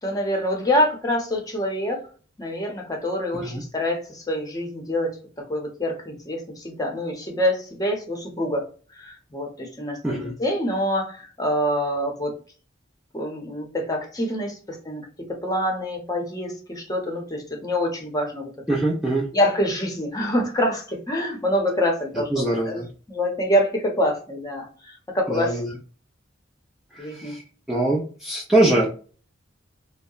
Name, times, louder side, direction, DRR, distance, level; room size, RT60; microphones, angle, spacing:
voice 1, 0.0-2.0 2.4-5.2 5.5-8.6 8.9-12.3 13.1-18.5 19.3-22.8 23.1-25.6 27.0-27.4, equal, 20° left, 1 dB, 0.7 m, -26 dB
voice 2, 18.7-19.3 22.3-22.9 25.3-25.7 26.9-27.4 27.7-28.9, right 2 dB, ahead, -4 dB, 0.4 m, -23 dB
2.8 x 2.1 x 2.3 m, 0.38 s
head